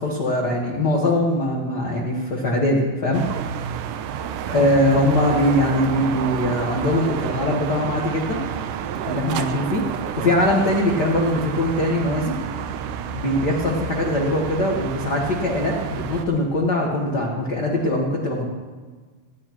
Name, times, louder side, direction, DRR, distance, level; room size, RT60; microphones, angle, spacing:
voice 1, 0.0-3.2 4.5-8.4 9.0-9.8 10.2-12.3 13.1-18.5, left 1 dB, 90° left, -1 dB, 0.9 m, -21 dB
sound 1, 3.1-16.3, right 8 dB, 75° right, 1.9 m, -30 dB
25.0 x 10.5 x 3.0 m, 1.4 s
omnidirectional pair, 4.2 m